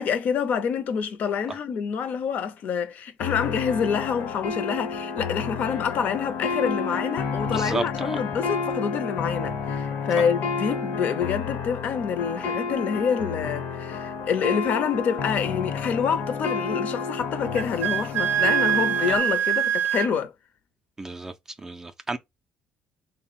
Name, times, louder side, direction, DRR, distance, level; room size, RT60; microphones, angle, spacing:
voice 1, 0.0-20.3, left 7 dB, 55° left, 0.5 m, -27 dB
sound 1, 3.2-19.2, left 5 dB, 85° left, 0.8 m, -30 dB
voice 2, 7.5-8.2 21.0-21.3 21.6-22.2, right 3 dB, 15° right, 0.3 m, -32 dB
Wind instrument woodwind instrument, 17.5-20.1, right 10 dB, 85° right, 0.4 m, -24 dB
3.2 x 2.1 x 4.0 m
cardioid pair, 165°, 3 cm